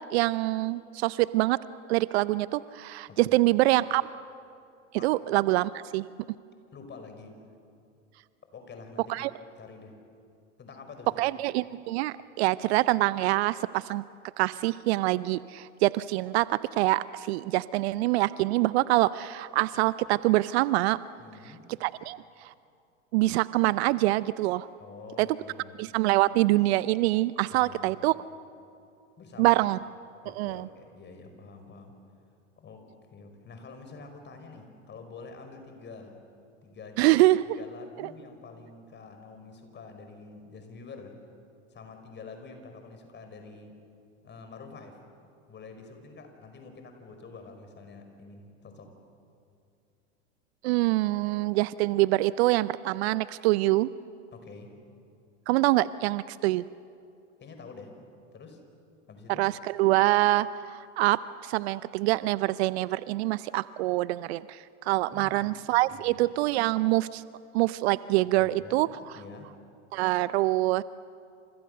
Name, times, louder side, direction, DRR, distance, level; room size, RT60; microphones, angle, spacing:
voice 1, 0.1-1.6 1.9-4.0 5.0-6.0 9.1-9.3 11.2-14.0 14.4-21.0 21.8-22.2 22.4-22.5 23.1-24.7 25.2-25.3 25.8-28.1 29.4-29.8 30.4-30.7 37.0-37.6 38.0-38.1 50.6-53.9 55.5-56.6 59.4-67.2 67.5-68.9 69.9-70.8, right 18 dB, 55° right, 18 dB, 0.6 m, -25 dB
voice 2, 6.7-7.3 8.5-9.1 9.6-10.0 10.6-11.4 21.2-21.6 24.8-25.8 27.5-28.0 29.2-29.6 30.2-31.9 32.6-36.2 36.6-37.1 37.4-41.1 41.7-43.7 44.2-45.0 45.5-48.9 54.3-54.7 57.4-57.9 58.3-58.6 59.1-59.5 65.1-65.5 65.9-66.2 68.4-69.5, left 4 dB, 30° left, 6 dB, 5.2 m, -47 dB
29.5 x 28.0 x 6.7 m, 2.6 s
hypercardioid pair, 85°, 38 cm